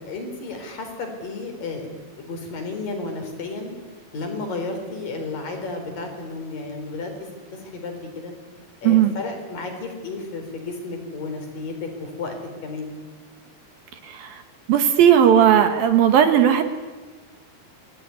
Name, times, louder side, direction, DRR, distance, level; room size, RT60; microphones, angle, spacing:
voice 1, 0.0-3.7 4.1-8.3 8.8-12.4 12.6-13.0, left 3 dB, 55° left, 5 dB, 5.6 m, -32 dB
voice 2, 14.0-14.4 14.7-16.6, right 9 dB, 65° right, 8 dB, 3.0 m, -16 dB
27.5 x 20.0 x 9.7 m, 1.3 s
omnidirectional pair, 4.8 m